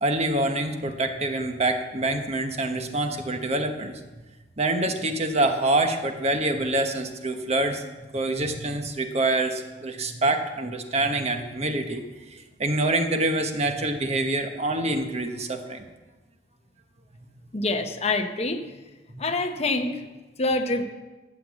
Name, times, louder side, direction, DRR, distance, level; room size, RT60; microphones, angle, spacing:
voice 1, 0.0-4.0 4.6-7.8 8.1-12.0 12.3-15.9 19.1-19.2, right 2 dB, 35° right, 6 dB, 1.0 m, -26 dB
voice 2, 17.5-18.6 19.2-20.0 20.4-20.8, left 2 dB, 35° left, 7 dB, 0.9 m, -26 dB
11.5 x 7.0 x 8.1 m, 1.2 s
head